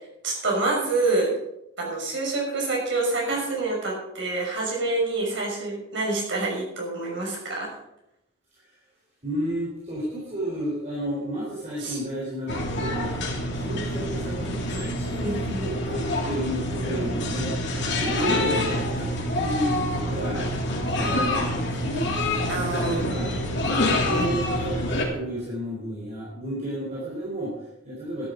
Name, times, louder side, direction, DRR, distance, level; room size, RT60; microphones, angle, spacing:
voice 1, 0.2-1.3 1.8-7.8 11.8-12.0 15.2-15.7 18.2-18.5 22.5-23.1, right 2 dB, 60° right, -2 dB, 6.0 m, -27 dB
voice 2, 9.2-13.2 13.5-17.6 18.0-20.5 20.7-22.1 22.5-28.3, right 1 dB, 35° right, -5 dB, 4.2 m, -32 dB
sound 1, 12.5-25.0, left 1 dB, 60° left, 2.9 m, -27 dB
13.0 x 11.5 x 5.2 m, 0.85 s
head